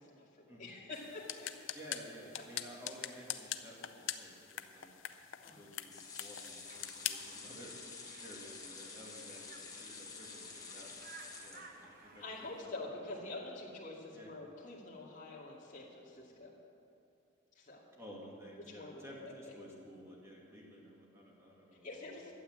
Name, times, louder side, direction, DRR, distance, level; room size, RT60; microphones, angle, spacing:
voice 1, 0.0-1.5 5.4-5.7 12.2-16.5 17.5-17.8 18.7-19.6 21.8-22.3, left 2 dB, 40° left, -5 dB, 2.3 m, -47 dB
sound 1, 0.9-7.4, left 11 dB, 70° left, 0.6 m, -44 dB
voice 2, 1.7-3.9 4.1-4.9 5.5-5.9 6.2-7.8 8.2-12.3 12.6-12.7 14.1-14.3 18.0-22.0, equal, 15° right, -4 dB, 2.2 m, -53 dB
sound 2, 5.9-12.2 12.6-12.7 13.0-13.1, left 4 dB, 20° left, 1.1 m, -49 dB
Conversation, 6.6-12.6, right 4 dB, 45° right, 1.0 m, -57 dB
12.5 x 8.3 x 7.5 m, 2.6 s
head